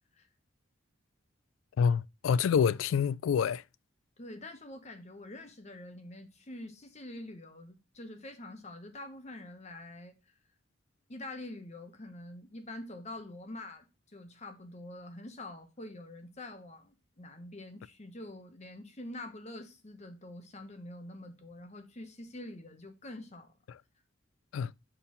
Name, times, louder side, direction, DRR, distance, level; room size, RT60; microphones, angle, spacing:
voice 1, 1.8-3.6 24.5-24.7, left 7 dB, 80° left, 0.3 m, -27 dB
voice 2, 4.2-10.1 11.1-23.5, left 1 dB, 35° left, 1.1 m, -46 dB
5.4 x 4.6 x 5.3 m
head